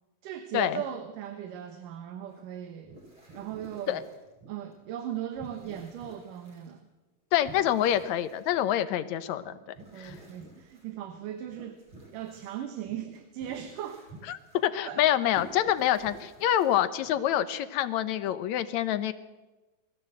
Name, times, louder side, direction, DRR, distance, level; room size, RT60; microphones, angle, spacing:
voice 1, 0.2-3.0 3.3-4.1 4.5-6.8 9.9-11.8 12.1-14.1 14.8-15.0, right 10 dB, 75° right, 7 dB, 2.8 m, -38 dB
sound 1, 2.3-2.5 2.8-4.8 5.1-6.7 7.4-8.9 9.4-17.3, right 2 dB, 35° right, 5.8 m, -51 dB
voice 2, 7.3-9.5 10.0-10.1 14.3-19.1, left 11 dB, 70° left, 12 dB, 2.0 m, -26 dB
22.0 x 15.5 x 7.9 m, 1.1 s
omnidirectional pair, 3.9 m